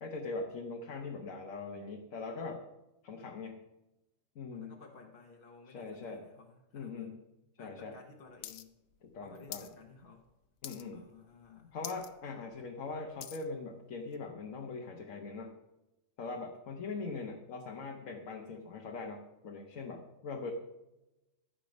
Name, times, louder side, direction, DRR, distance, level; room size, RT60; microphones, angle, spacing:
voice 1, 0.0-2.6 3.0-3.6 4.3-4.8 5.7-6.3 6.7-7.2 7.6-7.9 9.0-9.7 10.6-11.0 11.7-15.6 16.2-20.5, left 4 dB, 75° left, 1 dB, 1.4 m, -41 dB
voice 2, 4.5-7.2 7.6-8.7 9.2-10.3 10.9-11.8, left 4 dB, 45° left, 1 dB, 1.2 m, -56 dB
sound 1, 8.4-8.6 8.9-9.7 10.1-10.3 10.6-11.1 11.4-11.5 11.8-12.1 12.5-13.5 14.1-14.2, left 10 dB, 90° left, 1.1 m, -45 dB
13.5 x 7.0 x 5.3 m, 0.98 s
omnidirectional pair, 1.4 m